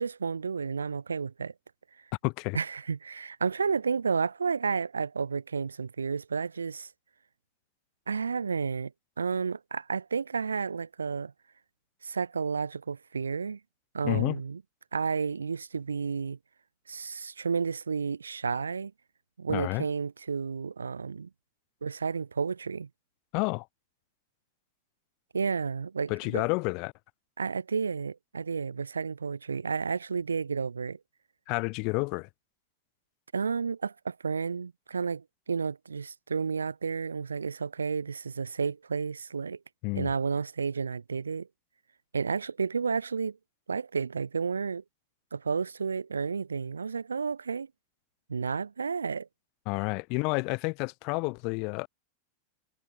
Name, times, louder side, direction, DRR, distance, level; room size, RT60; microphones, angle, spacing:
voice 1, 0.0-1.5 2.5-6.9 8.1-8.9 9.2-11.3 12.0-13.6 13.9-14.6 14.9-16.4 16.9-18.9 19.4-21.3 21.8-22.9 25.3-26.4 27.4-31.0 33.3-39.6 39.9-41.5 42.1-43.4 43.7-44.8 45.3-47.7 48.3-49.3, right 5 dB, 75° right, 3.7 m, -31 dB
voice 2, 2.2-2.6 14.0-14.4 19.5-19.9 23.3-23.7 26.1-26.9 31.5-32.3 39.8-40.1 49.7-51.9, left 32 dB, 45° left, 7.1 m, -30 dB
figure-of-eight pair, 90°, 0 cm